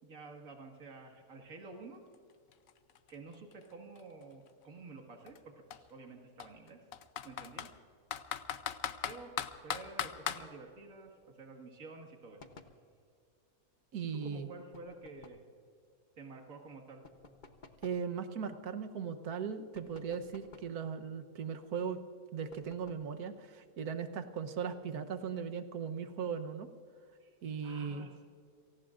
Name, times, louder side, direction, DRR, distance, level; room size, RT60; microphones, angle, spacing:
voice 1, 0.0-2.0 3.1-5.4 5.7-6.8 7.2-7.7 9.0-9.3 9.6-12.4 14.2-15.4 16.2-17.0 27.2-27.4 27.6-28.3, right 3 dB, 65° right, 2 dB, 2.3 m, -50 dB
Computer keyboard, 2.1-2.2 2.5-4.5 5.3-5.4 5.7-5.8 6.4-7.7 8.1-10.4, left 9 dB, 65° left, 1.1 m, -38 dB
sound 1, 12.4-12.8 14.7-15.5 17.0-18.1 19.7-20.8 22.5-23.1, left 4 dB, 35° left, 1.0 m, -56 dB
voice 2, 13.9-14.5 17.8-22.0 22.3-26.7 27.4-28.1, right 6 dB, 80° right, 9 dB, 1.5 m, -38 dB
29.5 x 18.5 x 2.5 m, 2.3 s
omnidirectional pair, 1.6 m